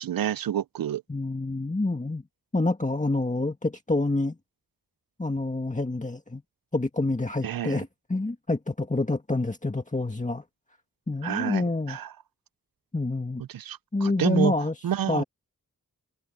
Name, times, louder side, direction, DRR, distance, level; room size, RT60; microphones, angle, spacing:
voice 1, 0.0-1.0 7.4-7.8 11.2-12.1 13.5-14.5 14.8-15.2, right 10 dB, 90° right, 0.5 m, -29 dB
voice 2, 1.1-2.2 2.5-4.3 5.2-6.4 6.7-10.4 11.1-12.0 12.9-13.4 13.9-14.7 15.1-15.2, left 2 dB, 20° left, 1.9 m, -27 dB
wide cardioid pair, 85°, 34 cm